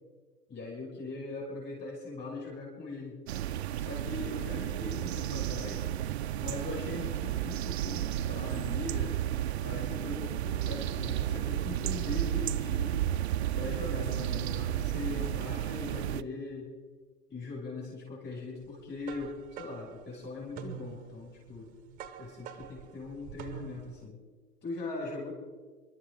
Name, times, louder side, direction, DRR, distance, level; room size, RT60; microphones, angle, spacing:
voice 1, 0.5-3.2 3.8-5.9 6.4-9.2 9.6-13.1 13.5-16.7 17.3-21.7 22.2-24.2 24.6-25.3, left 3 dB, 20° left, -3 dB, 6.0 m, -40 dB
sound 1, 3.3-16.2, right 12 dB, 45° right, 0.5 m, -32 dB
sound 2, 18.6-24.1, right 10 dB, 20° right, 0.9 m, -46 dB
27.0 x 12.5 x 3.8 m, 1.4 s
hypercardioid pair, 120°, 47 cm